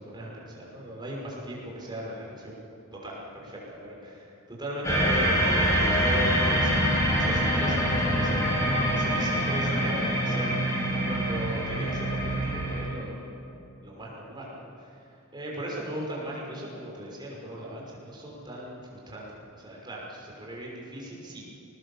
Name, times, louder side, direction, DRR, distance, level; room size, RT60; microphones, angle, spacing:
voice 1, 0.0-2.6 2.9-6.9 7.2-13.2 13.8-14.7 15.3-21.4, equal, 20° right, -4 dB, 5.9 m, -37 dB
sound 1, 4.8-12.9, equal, 15° left, 5.0 m, -25 dB
22.0 x 19.5 x 7.2 m, 2.9 s
head